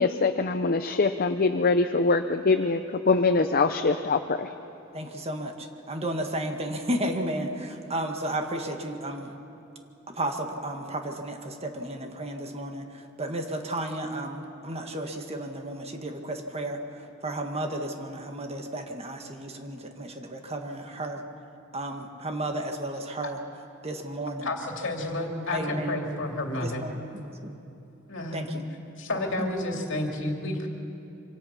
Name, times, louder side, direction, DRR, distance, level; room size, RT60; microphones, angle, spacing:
voice 1, 0.0-4.5, left 3 dB, 45° left, 8 dB, 0.6 m, -23 dB
voice 2, 4.9-9.3 10.1-21.2 21.7-23.4 23.8-24.5 25.5-26.0 26.6-27.6 28.3-28.6 29.4-29.5, right 1 dB, 30° right, 4 dB, 1.7 m, -33 dB
voice 3, 24.4-26.9 28.1-28.5 29.0-30.7, left 1 dB, 65° left, 2 dB, 2.7 m, -30 dB
26.0 x 25.0 x 5.8 m, 2.8 s
head